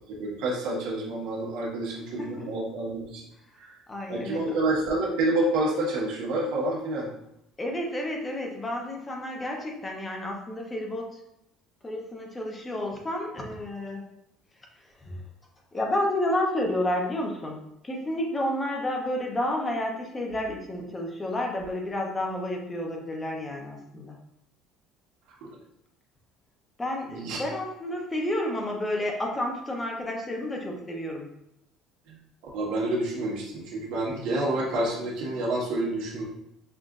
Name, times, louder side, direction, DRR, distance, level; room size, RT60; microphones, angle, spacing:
voice 1, 0.1-3.2 3.6-3.7 4.1-7.1 25.4-25.5 27.1-27.4 32.1-32.2 32.5-36.2, right 2 dB, 75° right, -4 dB, 1.3 m, -28 dB
voice 2, 3.9-4.4 7.6-11.2 11.8-14.1 15.0-15.2 15.7-24.2 26.8-31.3, left 1 dB, 15° left, 0 dB, 0.7 m, -30 dB
5.7 x 2.5 x 2.5 m, 0.80 s
cardioid pair, 150°, 0 cm